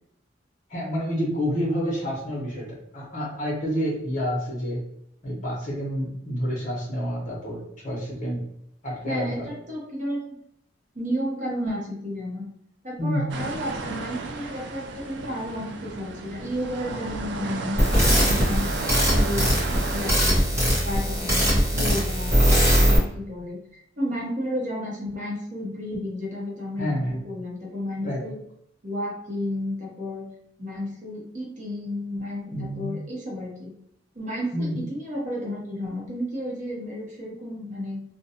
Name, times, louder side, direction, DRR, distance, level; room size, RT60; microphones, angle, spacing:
voice 1, 0.7-4.8 5.2-8.4 8.8-9.5 13.0-13.4 26.8-27.3 28.0-28.2 32.5-32.9 34.5-34.8, equal, 40° left, -2 dB, 0.9 m, -29 dB
voice 2, 9.0-10.4 10.9-12.5 12.8-28.4 28.8-30.3 30.6-33.7 34.1-38.0, left 1 dB, 40° right, -3 dB, 0.8 m, -32 dB
sound 1, 13.3-20.1, right 3 dB, 65° right, 0.3 m, -33 dB
sound 2, 17.8-23.0, equal, 15° right, 0.9 m, -21 dB
2.5 x 2.2 x 2.7 m, 0.74 s
head